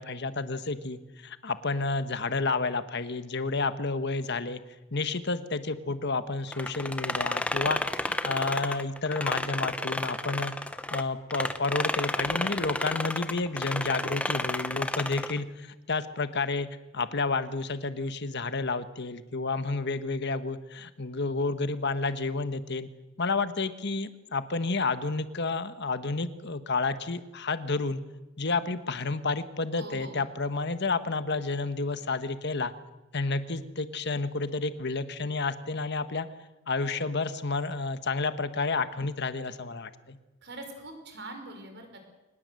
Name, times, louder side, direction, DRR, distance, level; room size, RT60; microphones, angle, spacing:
voice 1, 0.0-4.6 4.9-10.5 10.9-16.7 16.9-22.9 23.2-28.0 28.4-32.7 33.1-36.3 36.7-40.2, left 3 dB, 50° left, 11 dB, 1.3 m, -30 dB
sound 1, 6.5-11.0 11.3-15.4, left 1 dB, 5° left, 0.9 m, -31 dB
voice 2, 29.8-30.2 40.4-42.0, right 2 dB, 55° right, 5 dB, 5.2 m, -43 dB
24.0 x 19.5 x 7.8 m, 1.1 s
head